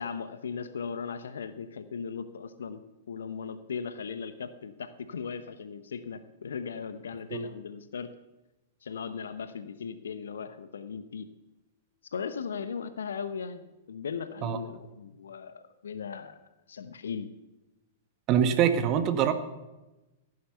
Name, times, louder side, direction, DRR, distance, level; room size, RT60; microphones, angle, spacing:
voice 1, 0.0-2.8 3.1-8.1 8.8-11.3 12.1-16.4 16.7-17.3, left 6 dB, 70° left, 12 dB, 0.9 m, -38 dB
voice 2, 18.3-19.3, right 9 dB, 35° right, 10 dB, 1.5 m, -24 dB
15.5 x 9.8 x 6.9 m, 1.0 s
figure-of-eight pair, 100°, 0 cm